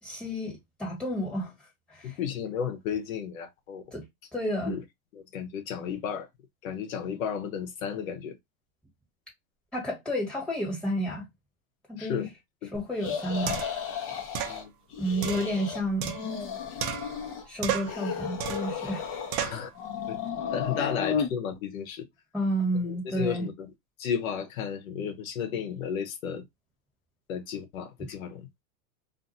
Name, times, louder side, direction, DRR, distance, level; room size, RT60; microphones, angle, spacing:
voice 1, 0.0-1.5 1.9-2.2 3.9-4.1 4.3-4.8 9.7-11.3 11.9-12.3 12.7-13.6 15.0-16.3 17.5-19.2 20.8-20.9 22.3-23.5, equal, ahead, 1.6 m, -31 dB
voice 2, 2.0-3.8 4.7-4.8 5.1-6.3 6.6-8.3 12.0-12.3 14.4-14.7 18.8-18.9 19.4-19.7 20.1-20.2 20.5-22.0 22.8-23.5 24.0-26.4 27.3-28.5, left 7 dB, 90° left, 0.9 m, -33 dB
sound 1, 12.8-12.9 13.5-13.9 14.4-14.6 15.2-16.5 16.8-17.3 17.6-18.0 18.4-18.8 19.3-19.7, right 9 dB, 45° right, 0.7 m, -33 dB
sound 2, 13.0-14.6 14.9-15.8 16.1-17.4 17.8-19.4 19.7-21.3, left 7 dB, 35° left, 0.9 m, -33 dB
2.6 x 2.5 x 2.6 m
supercardioid pair, 130°, 40 cm